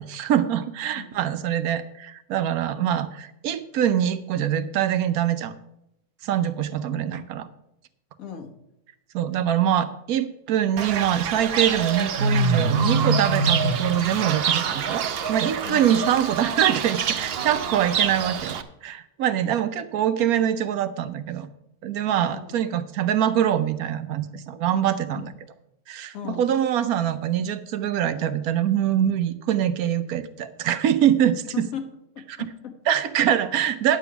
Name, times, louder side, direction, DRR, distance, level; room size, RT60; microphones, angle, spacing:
voice 1, 0.0-5.5 6.2-7.5 9.1-21.5 21.8-25.3 25.9-31.4 32.9-34.0, right 10 dB, 80° right, 11 dB, 1.2 m, -24 dB
voice 2, 8.2-8.5 15.6-16.0 22.2-22.5 25.2-25.3 26.1-26.4 31.5-31.8 32.1-32.7, left 8 dB, 65° left, 4 dB, 1.5 m, -36 dB
Fowl / Bird, 10.8-18.6, right 5 dB, 55° right, 0.7 m, -25 dB
10.0 x 7.1 x 5.8 m, 0.83 s
omnidirectional pair, 1.6 m